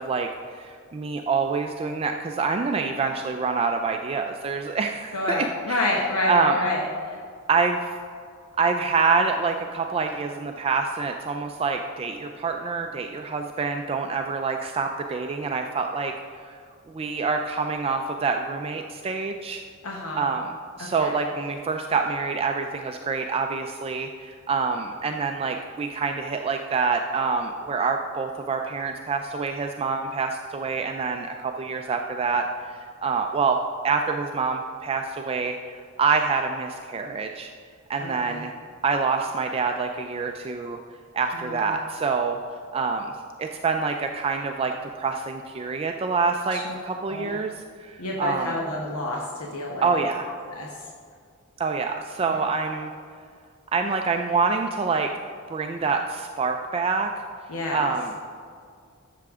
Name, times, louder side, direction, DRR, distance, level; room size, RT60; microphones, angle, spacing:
voice 1, 0.0-5.8 6.3-6.6 7.5-7.9 8.6-16.1 16.4-16.6 16.9-19.6 20.1-20.5 20.8-32.4 33.0-33.6 33.8-35.6 36.0-37.5 37.9-38.5 38.8-40.8 41.1-42.4 42.7-43.1 43.4-47.5 47.8-48.5 49.8-50.3 51.6-52.9 53.7-55.1 55.5-57.1 57.7-58.1, right 4 dB, 25° right, 4 dB, 0.4 m, -26 dB
voice 2, 5.1-7.2 19.8-20.2 20.8-21.2 38.0-38.5 41.3-41.7 46.5-46.7 47.1-47.3 48.0-50.1 50.5-50.8 52.3-52.4 57.5-57.9, left 2 dB, 80° left, -1 dB, 1.0 m, -29 dB
12.5 x 6.7 x 3.6 m, 2.2 s
head